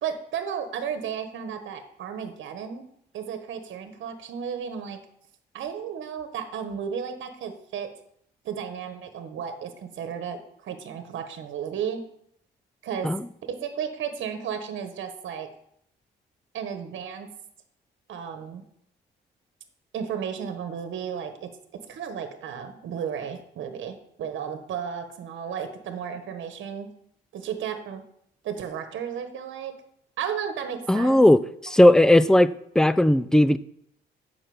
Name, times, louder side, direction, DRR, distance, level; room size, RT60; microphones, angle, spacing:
voice 1, 0.0-2.8 3.1-5.0 5.5-7.9 8.4-10.4 10.6-12.0 12.8-13.1 13.5-15.5 16.5-17.3 18.1-18.6 19.9-21.5 21.9-26.9 27.3-28.0 28.4-29.7 30.2-31.2, right 7 dB, 75° right, 7 dB, 1.3 m, -33 dB
voice 2, 30.9-32.5 32.8-33.6, left 1 dB, 5° left, 15 dB, 0.4 m, -17 dB
7.5 x 5.9 x 7.1 m, 0.70 s
cardioid pair, 90°, 20 cm